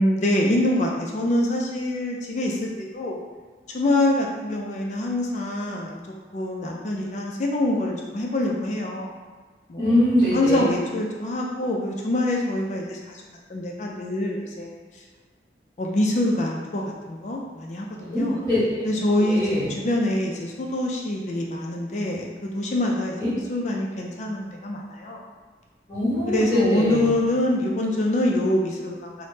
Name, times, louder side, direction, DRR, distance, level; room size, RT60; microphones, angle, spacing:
voice 1, 0.0-3.2 3.7-6.0 6.3-9.1 9.7-10.0 10.3-13.2 13.5-14.7 15.8-18.4 18.8-25.2 26.3-29.1, left 1 dB, 40° left, -1 dB, 0.3 m, -25 dB
voice 2, 9.8-10.6 18.0-18.9 19.1-19.6 23.2-23.3 25.9-27.0, left 1 dB, 20° left, -15 dB, 1.3 m, -23 dB
3.3 x 2.1 x 2.7 m, 1.5 s
head